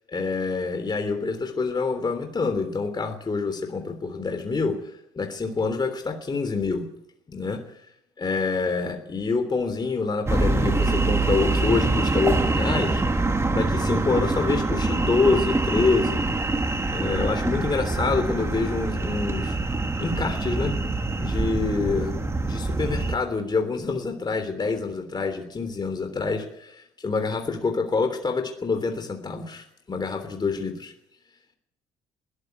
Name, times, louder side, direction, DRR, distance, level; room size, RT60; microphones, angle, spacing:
voice 1, 0.1-6.9 7.3-7.6 8.2-16.2 16.9-19.6 20.0-20.7 21.2-22.1 22.4-30.9, left 4 dB, 25° left, 6 dB, 3.3 m, -26 dB
sound 1, 10.3-23.1, right 2 dB, 15° right, 2.2 m, -25 dB
21.0 x 14.0 x 9.4 m, 0.77 s
cardioid pair, 110°, 17 cm